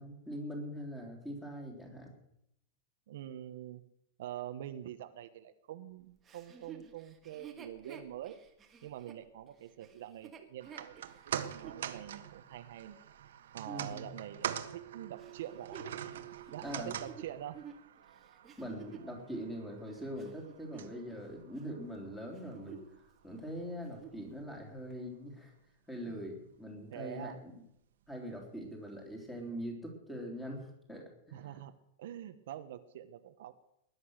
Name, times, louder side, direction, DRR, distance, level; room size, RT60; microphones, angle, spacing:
voice 1, 0.0-2.1 13.7-14.1 16.6-17.0 18.6-22.8 23.2-25.5 25.9-27.5 28.1-31.6, equal, 5° left, 1 dB, 3.4 m, -42 dB
voice 2, 3.1-3.8 4.2-8.4 8.8-13.0 13.5-15.8 16.5-17.7 26.1-26.2 26.9-27.4 31.3-31.7 32.0-33.5, right 11 dB, 55° right, 8 dB, 1.1 m, -45 dB
Chuckle chortle, 6.2-11.8 12.4-12.5 15.2-19.2 19.8-21.3 21.5-21.8 22.3-23.0 23.3-23.4 23.8-24.3 24.9-25.0, right 7 dB, 15° right, 1.6 m, -51 dB
sound 1, 10.6-23.0 23.3-23.4, right 10 dB, 75° right, 1.5 m, -44 dB
20.0 x 11.0 x 6.5 m, 0.78 s
supercardioid pair, 175°, 0 cm